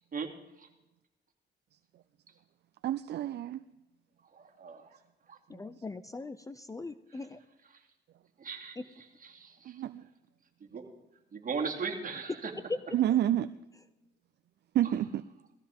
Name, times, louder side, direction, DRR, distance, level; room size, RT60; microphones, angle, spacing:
voice 1, 2.8-3.6 5.5-5.6 9.6-10.0 12.9-13.5 14.7-15.2, right 12 dB, 60° right, 12 dB, 0.4 m, -29 dB
voice 2, 4.3-4.9 5.3-5.4 8.4-8.8 9.2-9.8 10.6-10.8 11.3-12.5, right 5 dB, 45° right, 1 dB, 2.6 m, -37 dB
voice 3, 5.5-7.4 8.8-8.9 12.7-12.8, left 3 dB, 15° left, 13 dB, 0.5 m, -39 dB
17.5 x 14.5 x 3.6 m, 0.96 s
cardioid pair, 90°, 20 cm